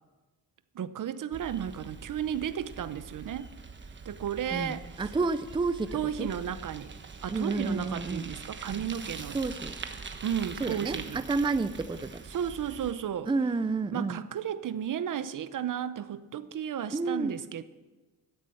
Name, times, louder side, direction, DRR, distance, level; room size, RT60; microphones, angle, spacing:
voice 1, 0.7-3.5 4.0-4.9 5.9-7.0 7.2-9.4 10.2-11.2 12.3-13.3 13.9-17.6, right 9 dB, 55° right, 0.8 m, -33 dB
Bicycle, 1.3-12.9, right 4 dB, 30° right, 1.2 m, -43 dB
voice 2, 4.5-6.3 7.3-8.3 9.3-9.7 10.6-12.2 13.3-14.2 16.9-17.4, right 3 dB, 15° right, 0.5 m, -30 dB
14.5 x 9.7 x 7.7 m
cardioid pair, 110°, 38 cm